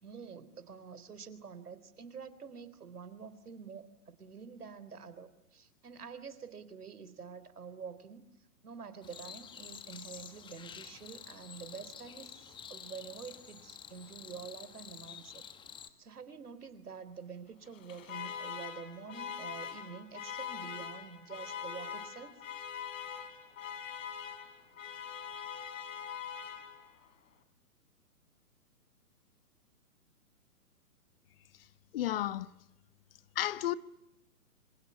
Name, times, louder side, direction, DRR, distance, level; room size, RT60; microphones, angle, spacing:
voice 1, 0.0-8.2 8.6-15.4 16.0-22.4, right 6 dB, 70° right, 3.8 m, -47 dB
sound 1, 9.0-15.9, left 8 dB, 10° left, 1.4 m, -49 dB
Alarm, 17.7-27.1, left 8 dB, 55° left, 3.9 m, -43 dB
voice 2, 31.9-32.5 33.3-33.7, left 13 dB, 40° left, 1.1 m, -32 dB
27.5 x 26.0 x 8.4 m
hypercardioid pair, 135°, 47 cm